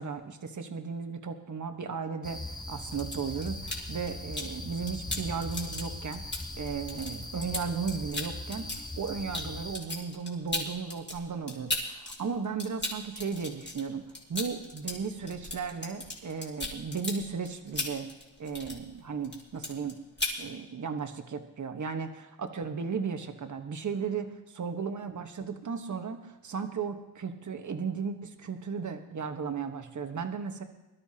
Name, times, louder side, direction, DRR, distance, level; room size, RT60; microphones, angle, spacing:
voice 1, 0.0-8.7 9.0-14.0 14.3-18.1 18.4-20.0 20.4-30.6, right 5 dB, 50° right, 6 dB, 1.3 m, -35 dB
sound 1, 2.2-9.8, left 2 dB, 10° left, 0.8 m, -40 dB
sound 2, 2.8-4.5 4.9-12.1 12.4-19.0 19.2-19.9 20.2-20.4, left 2 dB, 30° left, 2.9 m, -36 dB
22.0 x 12.5 x 2.9 m, 1.0 s
wide cardioid pair, 105°, 38 cm